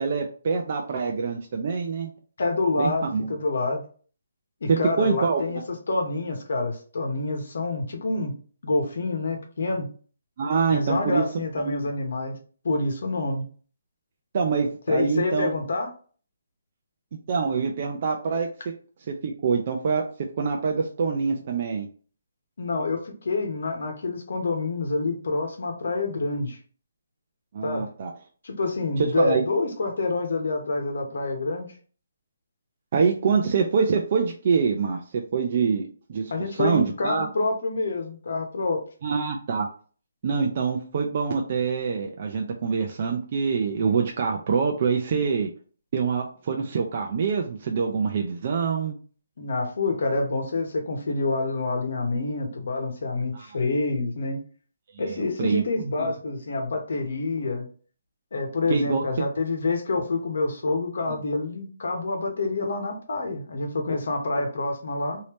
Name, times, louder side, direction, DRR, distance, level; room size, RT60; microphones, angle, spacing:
voice 1, 0.0-2.1 2.8-3.3 4.7-5.6 10.4-11.2 11.6-11.8 14.3-15.5 17.1-18.5 19.1-20.0 20.4-21.9 27.5-28.1 29.0-29.4 32.9-37.3 39.0-39.7 40.2-45.5 45.9-49.0 53.3-53.5 55.0-55.6 56.0-56.1 58.7-59.0, right 5 dB, 35° right, 2 dB, 0.4 m, -25 dB
voice 2, 2.4-3.8 4.6-5.6 5.9-8.3 8.6-9.9 10.7-12.4 12.6-13.4 14.9-15.9 22.6-26.6 27.6-27.9 28.4-31.7 36.3-38.8 45.1-45.2 49.4-54.4 55.0-57.7 58.3-65.2, left 3 dB, 60° left, 3 dB, 1.1 m, -27 dB
3.2 x 2.7 x 3.0 m, 0.40 s
hypercardioid pair, 170°, 0 cm